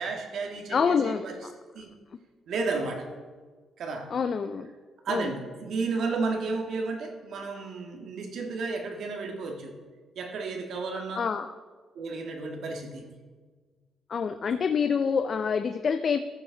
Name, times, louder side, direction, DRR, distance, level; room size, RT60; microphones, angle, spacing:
voice 1, 0.0-1.4 1.7-1.9 2.5-3.1 3.8-4.1 5.0-9.7 10.2-11.2 11.9-13.0 14.4-14.5, right 4 dB, 70° right, 3 dB, 1.7 m, -32 dB
voice 2, 0.7-1.5 4.1-4.7 5.1-5.3 11.1-11.5 14.1-16.2, left 6 dB, 50° left, 9 dB, 0.5 m, -27 dB
14.0 x 7.1 x 3.9 m, 1.4 s
cardioid pair, 90°, 0 cm